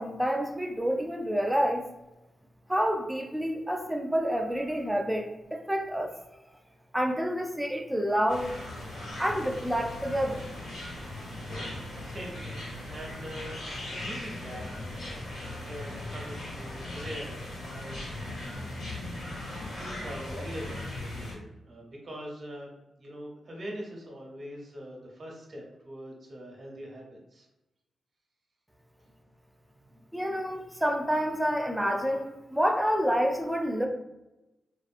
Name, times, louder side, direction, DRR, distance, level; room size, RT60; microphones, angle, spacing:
voice 1, 0.0-1.9 2.7-6.1 6.9-8.5 9.2-10.4 30.1-33.9, equal, 5° right, 4 dB, 0.4 m, -28 dB
sound 1, 8.3-21.3, left 1 dB, 75° left, 1.0 m, -38 dB
voice 2, 12.0-12.6 12.9-15.2 15.6-19.4 19.7-22.7 23.0-27.5, equal, 50° right, -2 dB, 0.9 m, -43 dB
2.6 x 2.4 x 2.5 m, 0.97 s
cardioid pair, 70°, 0 cm